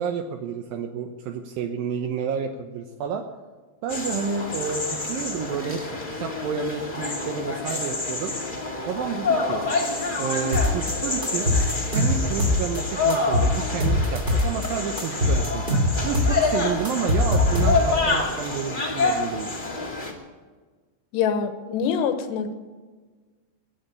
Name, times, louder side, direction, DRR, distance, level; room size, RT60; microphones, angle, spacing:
voice 1, 0.0-3.3 3.8-5.8 6.2-8.3 8.9-9.6 10.2-11.5 11.8-15.7 16.0-19.5, right 7 dB, 80° right, 4 dB, 2.1 m, -30 dB
sound 1, 3.9-20.1, left 3 dB, 50° left, 0.5 m, -27 dB
sound 2, 10.5-10.9 11.2-12.8 13.1-14.7 15.0-18.1, left 1 dB, 20° right, 1.4 m, -22 dB
voice 2, 21.1-22.5, left 7 dB, 75° left, 8 dB, 3.1 m, -25 dB
22.5 x 8.8 x 7.0 m, 1.4 s
omnidirectional pair, 5.4 m